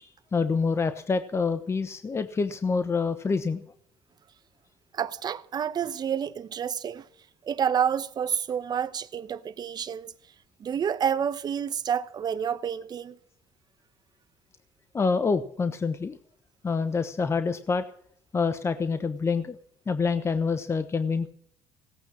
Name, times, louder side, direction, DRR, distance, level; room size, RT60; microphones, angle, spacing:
voice 1, 0.0-3.6 14.9-16.2 16.6-17.8 18.3-19.6 19.9-21.3, left 4 dB, 25° left, 1.1 m, -27 dB
voice 2, 4.9-7.0 7.5-10.1 10.6-13.2, right 8 dB, 45° right, 1.1 m, -29 dB
17.5 x 9.0 x 7.3 m
supercardioid pair, 85°, 10 cm